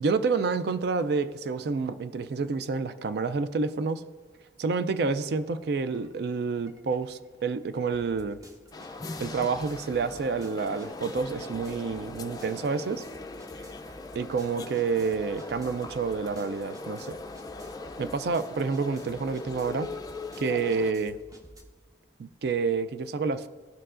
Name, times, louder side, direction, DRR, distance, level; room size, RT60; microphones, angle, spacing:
voice 1, 0.0-4.0 4.6-8.4 9.2-13.0 14.2-17.2 18.0-19.9 20.4-21.2 22.2-23.5, right 4 dB, 60° right, 12 dB, 0.4 m, -29 dB
sound 1, 5.9-6.1 6.4-21.6, equal, 20° right, 0.7 m, -53 dB
sound 2, 8.7-20.9, left 3 dB, 20° left, 0.3 m, -40 dB
13.0 x 4.6 x 2.5 m, 1.4 s
head